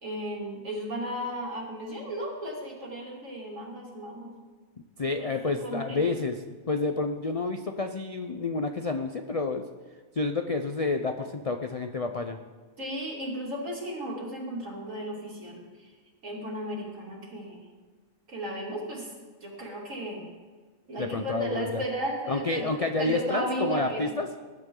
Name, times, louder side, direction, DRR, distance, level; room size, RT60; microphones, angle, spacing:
voice 1, 0.0-4.3 5.2-6.0 12.8-15.9 16.2-17.6 18.3-19.1 19.4-20.3 20.9-24.1, equal, 55° right, -2 dB, 3.4 m, -35 dB
voice 2, 5.0-6.4 6.7-9.6 10.1-12.4 21.0-21.8 22.3-24.3, left 3 dB, 50° left, 6 dB, 0.4 m, -29 dB
20.5 x 11.0 x 3.8 m, 1.4 s
omnidirectional pair, 1.6 m